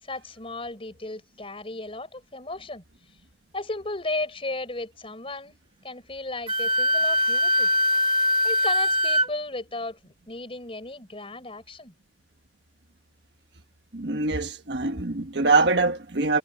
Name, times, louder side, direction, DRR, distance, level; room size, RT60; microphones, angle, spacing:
voice 1, 0.0-2.8 3.5-5.6 5.8-7.7 8.4-11.9, left 2 dB, 30° left, 4.8 m, -35 dB
Wind instrument woodwind instrument, 6.5-9.3, left 1 dB, 30° right, 2.1 m, -22 dB
voice 2, 13.9-16.4, right 3 dB, 75° right, 1.4 m, -23 dB
head